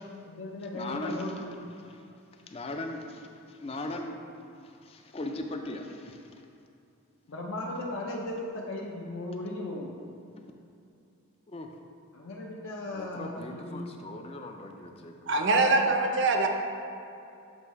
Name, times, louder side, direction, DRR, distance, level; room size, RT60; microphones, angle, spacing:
voice 1, 0.0-1.5 7.3-10.0 12.1-13.9, left 1 dB, 70° left, -2 dB, 0.6 m, -37 dB
voice 2, 0.7-2.0 2.3-4.2 4.6-6.4 10.4-10.5 11.5-11.7 12.9-15.3, left 2 dB, 25° left, 4 dB, 0.3 m, -39 dB
voice 3, 15.3-16.5, right 2 dB, 55° right, 4 dB, 0.5 m, -23 dB
7.7 x 3.1 x 4.6 m, 2.6 s
head